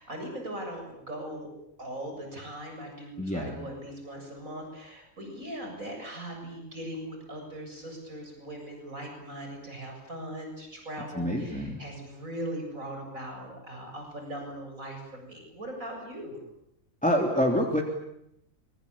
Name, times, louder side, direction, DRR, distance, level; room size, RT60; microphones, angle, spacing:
voice 1, 0.0-1.5 1.8-16.4, right 1 dB, 80° right, 2 dB, 8.1 m, -40 dB
voice 2, 3.2-3.6 11.1-11.8 17.0-17.8, equal, 5° left, 0 dB, 3.2 m, -26 dB
26.0 x 24.5 x 8.7 m, 0.80 s
omnidirectional pair, 1.4 m